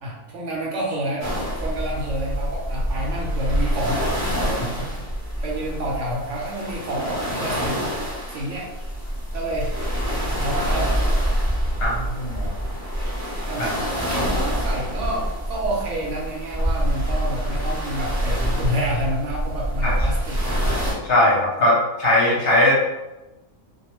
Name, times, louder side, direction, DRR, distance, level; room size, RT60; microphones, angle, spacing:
voice 1, 0.0-1.3 1.6-4.1 5.4-7.9 8.3-8.7 9.3-9.7 10.2-11.2 13.5-20.5, right 1 dB, 70° right, -2 dB, 0.8 m, -29 dB
sound 1, 1.2-20.9, equal, 20° right, 0.5 m, -26 dB
voice 2, 11.8-12.5 19.8-19.9 21.0-22.7, left 1 dB, 55° left, -5 dB, 0.8 m, -19 dB
2.3 x 2.2 x 2.9 m, 1.0 s
omnidirectional pair, 1.4 m